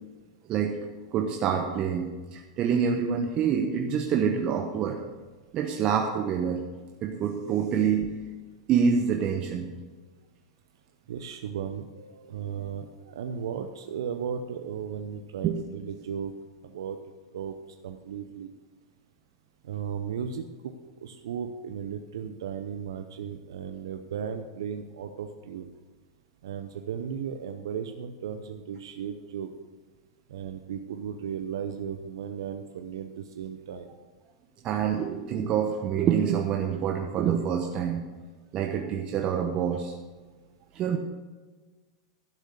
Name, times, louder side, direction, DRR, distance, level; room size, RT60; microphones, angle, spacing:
voice 1, 1.1-5.0 5.5-6.6 7.0-8.1 8.7-9.7 15.4-15.6 34.6-38.0 38.5-39.9 40.7-41.0, right 7 dB, 40° right, 3 dB, 1.0 m, -26 dB
voice 2, 11.1-16.3 16.6-17.0 17.3-17.6 17.8-18.5 19.6-20.7 21.0-25.7 26.4-29.5 30.3-33.9, right 7 dB, 75° right, 7 dB, 0.7 m, -35 dB
12.0 x 6.5 x 6.6 m, 1.3 s
hypercardioid pair, 105°, 2 cm